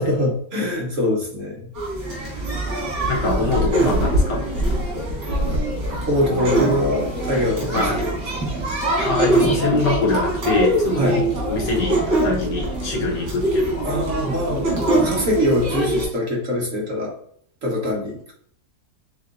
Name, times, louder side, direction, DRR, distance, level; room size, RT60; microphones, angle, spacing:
voice 1, 0.0-1.7 2.0-2.1 3.2-3.3 3.8-3.9 6.1-8.4 11.0-11.2 13.8-17.1 17.6-18.3, left 1 dB, 55° right, -2 dB, 1.3 m, -23 dB
sound 1, 1.7-16.0, right 1 dB, 85° right, 2.2 m, -23 dB
voice 2, 3.1-4.5 7.7-8.1 8.9-13.9, left 3 dB, 75° left, -1 dB, 1.5 m, -24 dB
4.9 x 3.7 x 2.5 m, 0.62 s
omnidirectional pair, 1.8 m